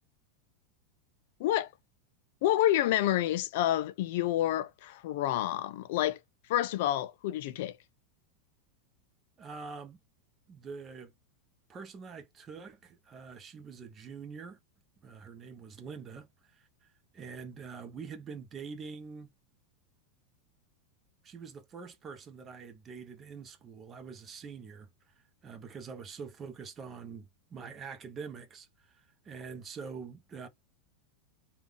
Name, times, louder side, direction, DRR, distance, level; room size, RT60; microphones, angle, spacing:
voice 1, 2.4-6.2 6.5-7.7, left 13 dB, 65° left, 0.4 m, -28 dB
voice 2, 9.4-10.0 10.5-11.1 11.7-14.6 15.0-19.3 21.2-25.1 25.4-30.5, right 5 dB, 25° right, 0.8 m, -45 dB
3.5 x 2.3 x 3.3 m
supercardioid pair, 135°, 0 cm